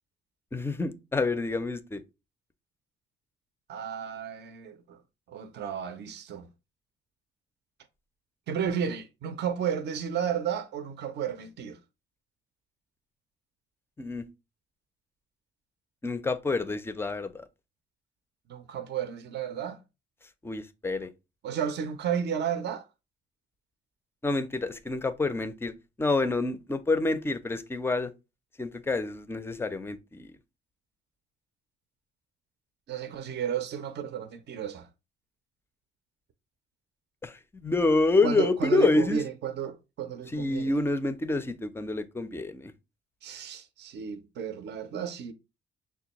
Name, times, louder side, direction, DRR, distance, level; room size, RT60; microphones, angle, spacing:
voice 1, 0.5-2.0 14.0-14.3 16.0-17.5 20.4-21.1 24.2-28.1 28.6-30.3 37.2-39.2 40.3-42.7, left 3 dB, 10° left, 0.4 m, -28 dB
voice 2, 3.7-5.0 5.3-6.5 8.5-11.8 18.5-19.8 21.4-22.8 32.9-34.9 38.2-40.8 43.2-45.3, right 8 dB, 60° right, 0.5 m, -33 dB
5.9 x 2.2 x 2.8 m
cardioid pair, 90°, 20 cm